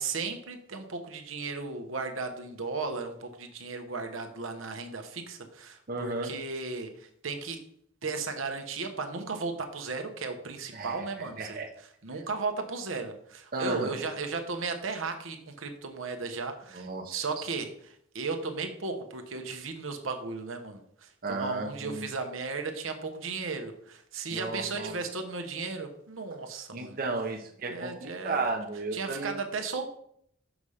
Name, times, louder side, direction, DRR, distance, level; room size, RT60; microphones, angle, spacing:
voice 1, 0.0-7.6 8.0-11.6 12.0-27.0 27.7-28.4 28.9-29.9, right 4 dB, 80° right, 5 dB, 1.0 m, -35 dB
voice 2, 5.9-6.3 10.7-11.7 13.5-14.0 16.7-17.2 21.2-22.1 24.3-24.9 26.7-29.4, right 3 dB, 45° right, 2 dB, 0.8 m, -34 dB
6.0 x 5.5 x 4.9 m, 0.68 s
head